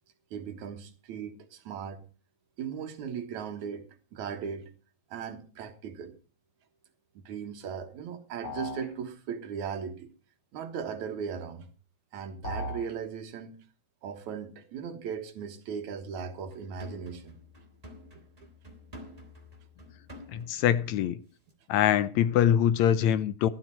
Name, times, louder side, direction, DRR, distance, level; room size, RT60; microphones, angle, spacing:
voice 1, 0.3-2.1 2.6-4.7 5.1-6.1 7.1-10.1 10.5-11.7 12.1-13.6 14.0-17.4, right 7 dB, 75° right, 2.8 m, -38 dB
sound 1, 8.4-8.9 12.4-12.9, left 1 dB, 25° left, 6.4 m, -36 dB
sound 2, 16.4-21.1 21.4-21.5, left 1 dB, 15° right, 2.2 m, -50 dB
voice 2, 20.3-21.2 21.7-23.5, left 10 dB, 75° left, 2.0 m, -24 dB
13.5 x 12.0 x 4.6 m
omnidirectional pair, 3.4 m